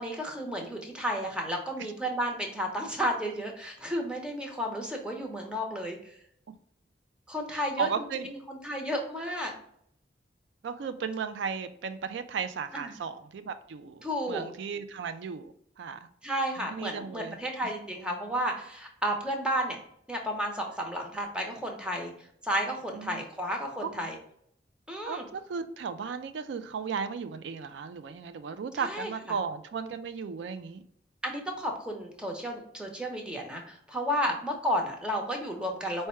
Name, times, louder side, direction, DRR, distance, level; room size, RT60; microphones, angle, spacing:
voice 1, 0.0-6.0 7.3-9.5 12.7-13.0 14.0-14.4 16.2-19.8 20.1-22.1 22.4-24.2 24.9-25.2 28.8-29.1 31.2-36.1, equal, 5° right, 1 dB, 0.8 m, -32 dB
voice 2, 7.5-8.3 10.6-16.1 16.6-17.4 22.9-23.2 23.8-24.0 25.1-30.8, right 5 dB, 85° right, 10 dB, 0.4 m, -35 dB
4.6 x 2.2 x 4.3 m, 0.69 s
head